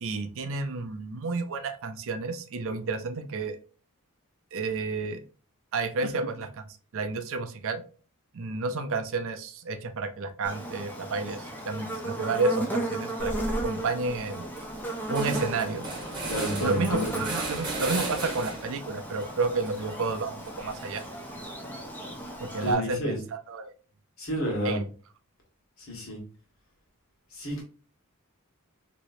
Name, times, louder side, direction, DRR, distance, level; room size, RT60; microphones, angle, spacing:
voice 1, 0.0-3.6 4.5-5.2 5.7-6.6 6.9-7.8 8.3-13.3 13.6-14.5 15.1-15.8 16.6-21.0 22.4-23.7 24.6-24.8, right 3 dB, 60° right, 9 dB, 0.5 m, -30 dB
Buzz, 10.4-22.7, right 1 dB, 10° left, 0.6 m, -36 dB
sound 1, 13.2-13.7 14.1-14.2 14.4-18.8 19.2-21.3, right 2 dB, 20° right, 1.1 m, -36 dB
voice 2, 16.3-17.1 22.6-23.2 24.2-24.8 25.8-26.2 27.3-27.6, equal, 65° left, -1 dB, 1.6 m, -30 dB
3.0 x 3.0 x 2.6 m, 0.37 s
head